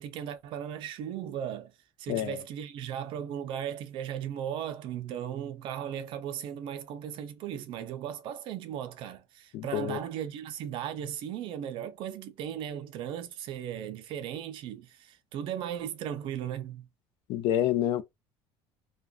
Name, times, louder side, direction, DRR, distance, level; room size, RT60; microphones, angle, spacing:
voice 1, 0.0-1.7 2.0-16.9, right 9 dB, 60° right, 0.5 m, -37 dB
voice 2, 9.5-10.0 17.3-18.0, left 12 dB, 65° left, 0.5 m, -28 dB
2.4 x 2.2 x 2.3 m
cardioid pair, 140°, 10 cm